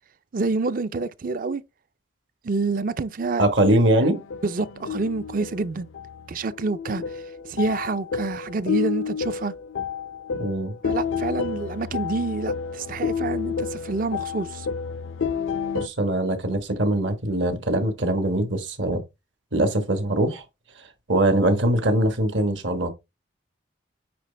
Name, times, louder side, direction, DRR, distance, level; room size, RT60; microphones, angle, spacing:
voice 1, 0.3-1.6 2.4-3.7 4.4-5.9 6.3-7.2 7.5-9.5 10.8-14.7, right 3 dB, 45° right, 0.4 m, -27 dB
voice 2, 3.4-4.2 10.3-10.8 15.7-19.0 19.5-20.4 21.1-22.9, right 1 dB, 70° right, 1.4 m, -22 dB
sound 1, 4.1-15.9, left 6 dB, 85° left, 0.5 m, -30 dB
9.5 x 4.0 x 3.3 m
head